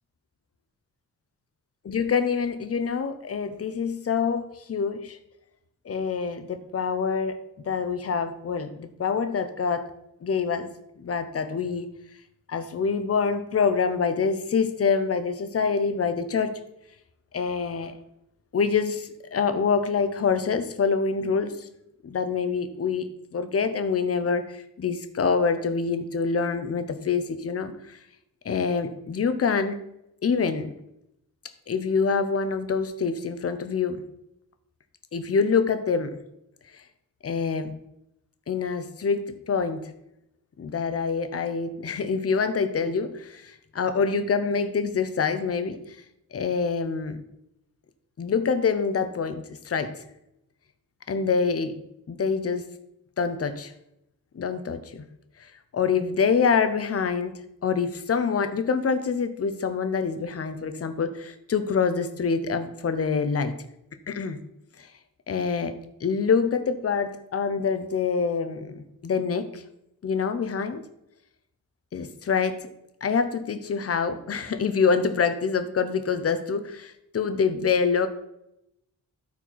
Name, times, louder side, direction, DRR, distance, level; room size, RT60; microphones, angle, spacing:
voice 1, 1.8-5.2 5.8-7.4 7.7-9.9 10.2-10.7 11.0-11.9 12.5-16.6 17.3-17.9 18.5-21.7 22.0-28.0 28.4-29.8 30.2-30.7 31.7-34.0 35.1-36.2 36.7-36.8 37.2-37.7 38.5-39.9 40.6-45.8 46.3-47.2 48.2-49.9 51.1-51.7 52.1-52.7 53.2-53.7 54.3-55.0 55.4-57.3 57.6-63.5 64.1-64.4 65.3-65.8 66.0-69.6 70.0-70.8 71.9-72.6 73.0-78.1, left 5 dB, 40° left, 10 dB, 0.8 m, -26 dB
13.0 x 4.4 x 4.6 m, 0.81 s
wide cardioid pair, 170°, 35 cm